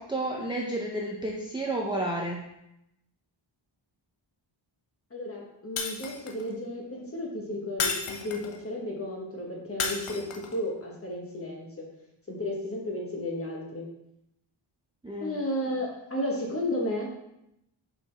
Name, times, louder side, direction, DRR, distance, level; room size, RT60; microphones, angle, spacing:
voice 1, 0.0-2.4 15.0-15.4, right 1 dB, 10° right, -2 dB, 0.5 m, -31 dB
voice 2, 5.1-10.2 10.5-11.9 12.3-13.9 15.2-17.1, left 1 dB, 30° left, -1 dB, 1.2 m, -33 dB
Shatter, 5.8-6.5 7.8-8.6 9.8-10.6, left 5 dB, 90° left, 0.8 m, -32 dB
5.6 x 5.1 x 3.3 m, 0.82 s
wide cardioid pair, 170°, 48 cm